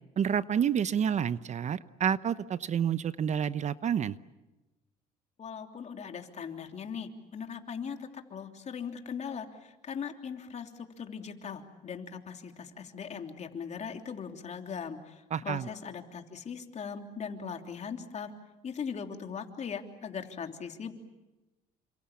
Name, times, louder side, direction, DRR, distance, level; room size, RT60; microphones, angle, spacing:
voice 1, 0.2-4.1 15.3-15.7, right 8 dB, 45° right, 15 dB, 0.8 m, -29 dB
voice 2, 5.4-18.3 18.6-20.9, left 6 dB, 45° left, 5 dB, 3.2 m, -39 dB
29.5 x 26.5 x 7.3 m, 1.1 s
cardioid pair, 110°, 17 cm